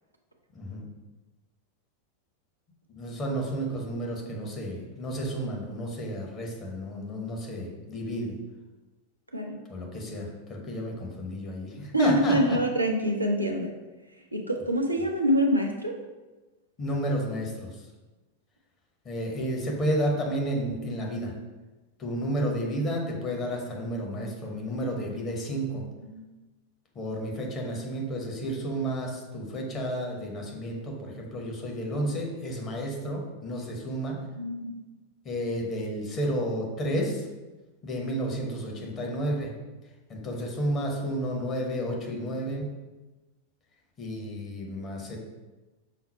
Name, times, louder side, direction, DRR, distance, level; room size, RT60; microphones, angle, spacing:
voice 1, 0.5-0.8 2.9-8.4 9.7-12.6 16.8-17.8 19.0-21.3 22.0-25.8 26.9-34.2 35.2-37.2 37.8-39.5 40.1-42.7 44.0-45.2, equal, 30° left, 0 dB, 1.0 m, -31 dB
voice 2, 11.9-13.7 14.3-15.9 26.0-26.2 34.3-34.8, equal, 85° right, 1 dB, 0.5 m, -25 dB
5.8 x 2.0 x 4.2 m, 1.2 s
figure-of-eight pair, 90°, 0 cm